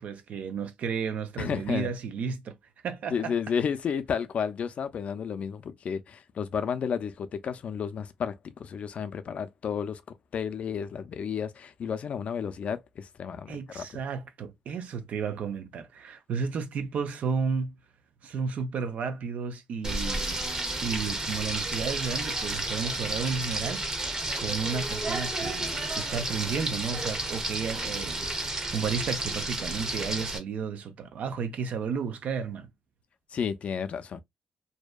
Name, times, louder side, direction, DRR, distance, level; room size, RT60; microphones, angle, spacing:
voice 1, 0.0-2.6 2.8-3.3 13.5-17.8 18.2-20.5 20.8-32.7, right 6 dB, 75° right, 0.5 m, -33 dB
voice 2, 1.4-1.9 3.1-10.0 10.3-13.9 33.3-34.2, left 7 dB, 60° left, 0.4 m, -32 dB
Frying (food), 19.8-30.4, right 2 dB, 25° right, 0.7 m, -31 dB
2.7 x 2.1 x 2.2 m
cardioid pair, 110°, 3 cm